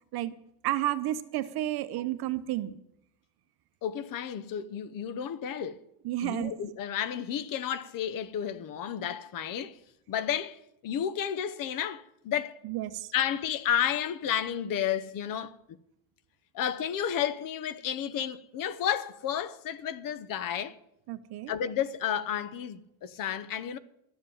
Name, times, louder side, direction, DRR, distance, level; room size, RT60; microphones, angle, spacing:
voice 1, 0.6-2.7 6.0-6.5 12.6-13.1 21.1-21.5, right 14 dB, 55° right, 1.0 m, -31 dB
voice 2, 3.8-5.8 6.2-9.8 10.1-12.6 13.1-15.8 16.5-20.8 21.5-23.8, left 9 dB, 45° left, 0.8 m, -32 dB
13.0 x 7.7 x 9.9 m
cardioid pair, 155°, 46 cm